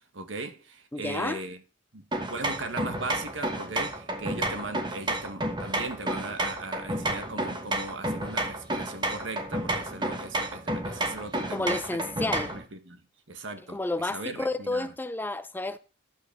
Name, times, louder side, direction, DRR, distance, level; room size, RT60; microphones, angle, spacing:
voice 1, 0.1-1.6 1.9-13.0 13.3-14.9, right 2 dB, 75° right, 1.6 m, -38 dB
voice 2, 0.9-1.4 11.5-12.5 13.7-15.8, left 2 dB, 10° left, 0.4 m, -31 dB
sound 1, 2.1-12.7, right 1 dB, 25° right, 1.4 m, -31 dB
12.0 x 5.8 x 6.8 m
head